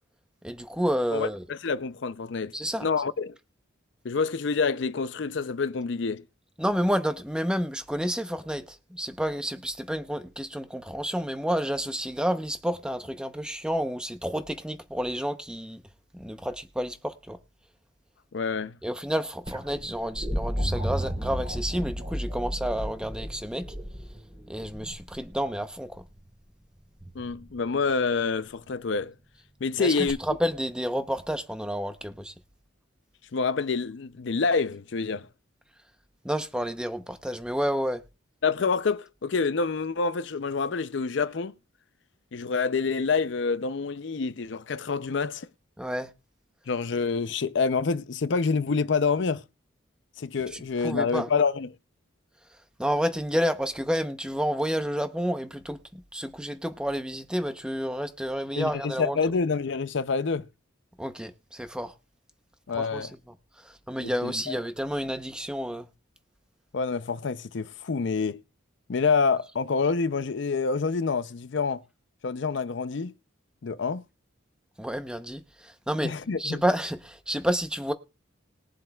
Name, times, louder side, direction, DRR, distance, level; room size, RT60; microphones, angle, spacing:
voice 1, 0.4-1.4 2.5-2.9 6.6-15.8 16.1-17.4 18.8-23.7 24.5-26.0 29.8-32.3 36.2-38.0 45.8-46.1 50.5-51.3 52.8-59.2 61.0-61.9 62.7-63.1 63.6-65.9 74.8-76.1 76.4-77.9, equal, 5° right, 0.7 m, -30 dB
voice 2, 1.1-2.5 2.8-3.3 4.0-6.2 18.3-18.8 27.1-29.1 29.6-30.2 33.3-35.3 38.4-41.5 42.3-45.5 46.7-49.4 50.2-51.7 58.6-60.5 62.7-63.1 64.0-64.6 66.7-68.4 68.9-71.8 72.2-73.1 73.6-74.0 76.0-76.6, left 4 dB, 60° left, 0.5 m, -27 dB
sound 1, 19.5-25.4 27.0-27.5 30.1-30.2, equal, 25° right, 3.1 m, -33 dB
21.0 x 7.6 x 2.3 m
head